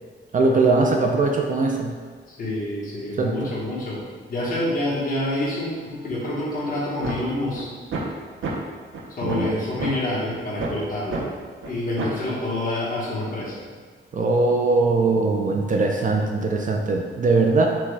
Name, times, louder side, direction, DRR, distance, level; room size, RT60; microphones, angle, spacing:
voice 1, 0.3-1.9 3.2-3.5 9.2-9.5 14.1-17.7, right 3 dB, 40° right, 1 dB, 0.4 m, -21 dB
voice 2, 2.3-4.0 4.3-7.7 9.1-11.2 11.6-13.6, left 1 dB, 45° left, -6 dB, 1.2 m, -27 dB
sound 1, 7.0-7.2 7.5-7.6 7.9-8.1 8.4-8.5 8.9-9.0 9.3-9.5 9.8-9.9 10.3-10.7 11.1-11.2 11.6-11.7 12.0-12.2, right 3 dB, 85° right, 0.7 m, -28 dB
5.9 x 2.3 x 3.2 m, 1.5 s
wide cardioid pair, 175°, 20 cm